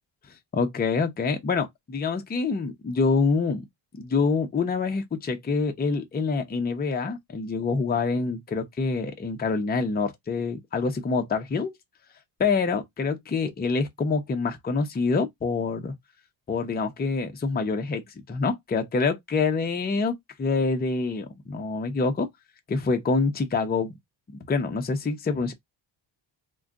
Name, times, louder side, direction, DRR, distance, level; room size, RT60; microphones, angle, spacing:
voice 1, 0.5-3.6 4.0-11.7 12.4-15.9 16.5-18.0 18.3-22.3 22.7-23.9 24.3-25.5, left 4 dB, 20° left, 0.6 m, -26 dB
2.4 x 2.2 x 3.5 m
cardioid pair, 120°, 48 cm